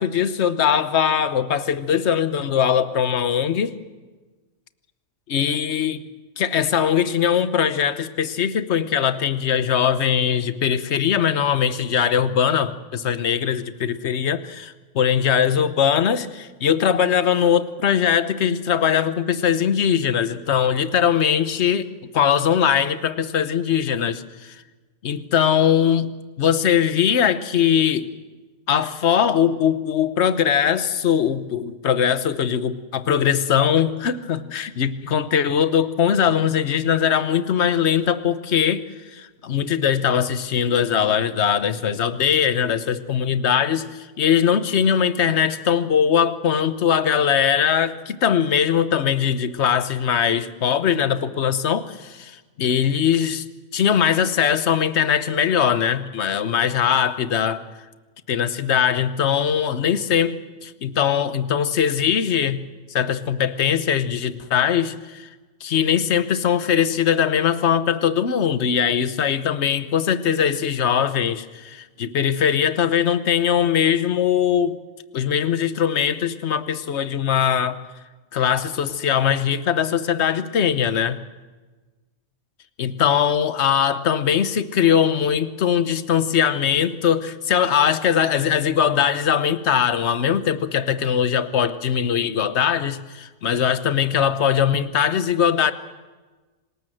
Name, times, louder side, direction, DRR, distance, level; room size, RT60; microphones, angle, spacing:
voice 1, 0.0-3.7 5.3-6.0 6.4-24.6 25.0-28.1 28.7-53.4 53.7-57.6 58.3-62.6 62.9-65.3 65.6-74.8 75.1-77.8 78.3-81.2 82.8-95.7, left 8 dB, 60° left, 12 dB, 1.2 m, -21 dB
26.0 x 20.0 x 7.8 m, 1.3 s
omnidirectional pair, 1.3 m